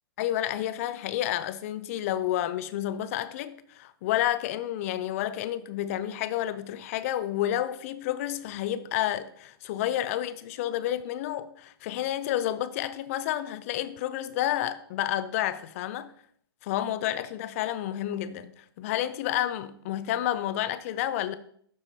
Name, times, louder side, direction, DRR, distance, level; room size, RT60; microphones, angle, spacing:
voice 1, 0.2-16.1 16.6-21.4, left 12 dB, 35° left, 0.4 m, -30 dB
12.0 x 4.7 x 2.7 m
hypercardioid pair, 135°, 13 cm